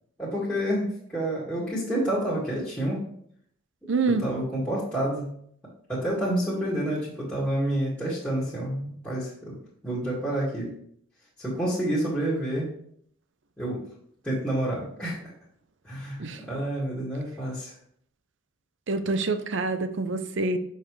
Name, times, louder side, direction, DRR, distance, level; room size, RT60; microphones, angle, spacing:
voice 1, 0.2-3.0 4.2-5.3 5.9-9.5 9.8-10.7 11.4-12.7 13.6-13.8 14.2-15.2 15.8-17.7, right 1 dB, 5° left, -11 dB, 2.0 m, -28 dB
voice 2, 3.9-4.2 16.2-16.4 18.9-20.6, right 3 dB, 60° right, 10 dB, 0.6 m, -26 dB
7.1 x 5.5 x 3.3 m, 0.65 s
head